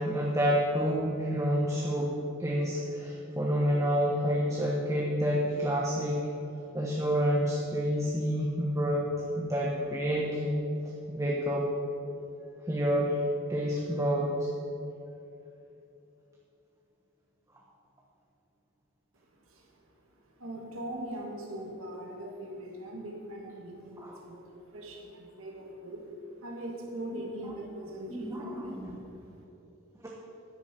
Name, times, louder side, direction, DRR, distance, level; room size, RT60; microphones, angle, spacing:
voice 1, 0.0-2.1 2.4-6.3 6.7-9.1 9.4-10.5 11.1-11.7 12.7-13.2 13.5-14.5 24.0-24.2 27.1-27.2 28.1-28.9, equal, 15° right, -3 dB, 1.1 m, -28 dB
voice 2, 20.4-29.3, right 1 dB, 80° right, 0 dB, 1.9 m, -41 dB
10.0 x 9.4 x 6.0 m, 2.9 s
head